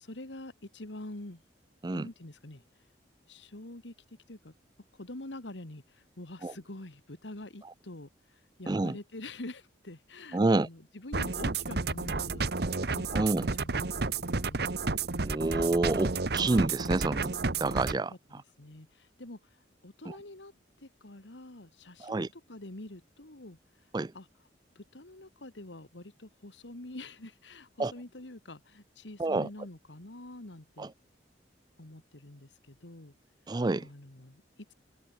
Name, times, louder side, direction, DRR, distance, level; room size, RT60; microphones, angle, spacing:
voice 1, 0.1-1.4 1.9-2.6 3.3-3.9 4.3-4.5 4.9-12.5 12.8-14.7 17.5-17.6 18.1-23.6 24.1-24.3 24.8-30.9 31.8-33.1 33.8-34.7, left 1 dB, 80° left, 2.2 m, -46 dB
voice 2, 10.3-10.7 13.1-13.5 15.2-17.4 17.6-18.1 20.1-20.2 22.0-22.3 23.9-24.1 27.8-27.9 29.2-29.5 30.8-30.9 33.5-33.9, right 2 dB, 25° right, 0.4 m, -28 dB
sound 1, 11.1-18.0, right 3 dB, 60° right, 1.2 m, -31 dB
head